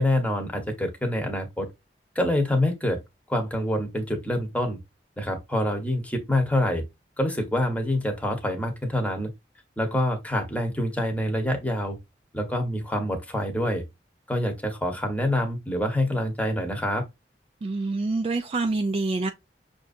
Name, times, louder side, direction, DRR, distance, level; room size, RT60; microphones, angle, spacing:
voice 1, 0.0-1.7 2.1-3.0 3.3-4.8 5.2-6.8 7.2-9.3 9.8-12.0 12.3-13.8 14.3-17.0, left 1 dB, 10° left, 1.0 m, -26 dB
voice 2, 17.6-19.3, right 3 dB, 35° right, 0.3 m, -26 dB
5.9 x 2.6 x 2.4 m
head